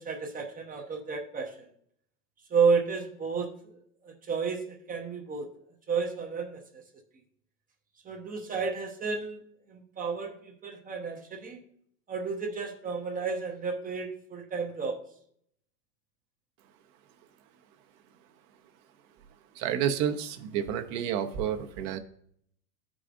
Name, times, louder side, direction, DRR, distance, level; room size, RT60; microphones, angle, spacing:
voice 1, 0.0-1.7 2.5-3.8 4.0-5.5 5.9-6.8 8.0-9.4 9.7-11.6 12.1-15.0, right 5 dB, 20° right, 3 dB, 0.7 m, -31 dB
voice 2, 19.6-22.0, right 9 dB, 45° right, 6 dB, 0.9 m, -30 dB
12.5 x 4.9 x 2.5 m, 0.67 s
hypercardioid pair, 125°, 48 cm